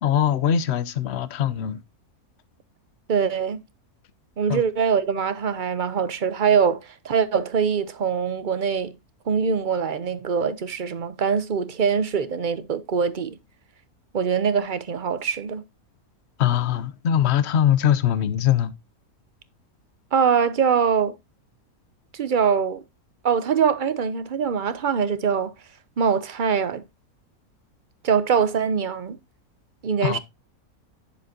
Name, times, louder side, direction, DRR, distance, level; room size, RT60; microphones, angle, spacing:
voice 1, 0.0-1.8 4.5-4.6 16.4-18.7 30.0-30.2, left 9 dB, 55° left, 0.9 m, -22 dB
voice 2, 3.1-3.6 4.4-8.9 9.3-13.4 14.1-15.6 20.1-21.1 22.1-22.8 23.2-25.5 26.0-26.8 28.0-29.2 29.8-30.2, right 6 dB, 50° right, 0.6 m, -23 dB
10.5 x 7.0 x 2.7 m
omnidirectional pair, 1.6 m